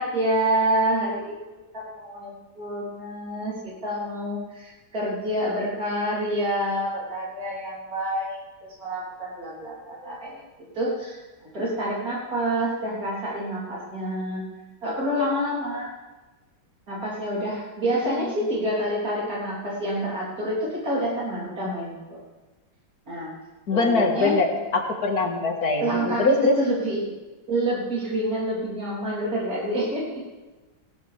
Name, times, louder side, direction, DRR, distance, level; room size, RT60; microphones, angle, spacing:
voice 1, 0.0-1.4 1.7-8.4 8.8-10.4 10.8-11.2 11.5-14.4 14.8-15.9 16.9-22.2 23.1-23.3 23.7-24.4 25.8-27.1 27.5-30.2, right 1 dB, 55° right, -6 dB, 4.1 m, -27 dB
voice 2, 23.7-24.5 24.7-26.5, left 3 dB, 60° left, 2 dB, 2.2 m, -22 dB
18.0 x 16.5 x 3.4 m, 1.2 s
omnidirectional pair, 1.9 m